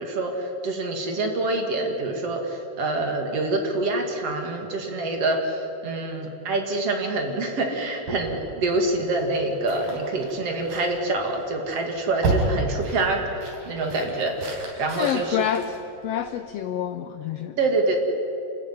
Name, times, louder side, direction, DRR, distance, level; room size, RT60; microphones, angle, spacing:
voice 1, 0.0-15.4 17.6-18.0, right 2 dB, 50° right, 3 dB, 3.2 m, -26 dB
sound 1, 8.0-16.5, right 3 dB, 85° right, 5.3 m, -33 dB
voice 2, 15.0-15.8 16.0-17.6, left 10 dB, 90° left, 11 dB, 1.4 m, -27 dB
28.5 x 13.5 x 9.7 m, 3.0 s
omnidirectional pair, 3.7 m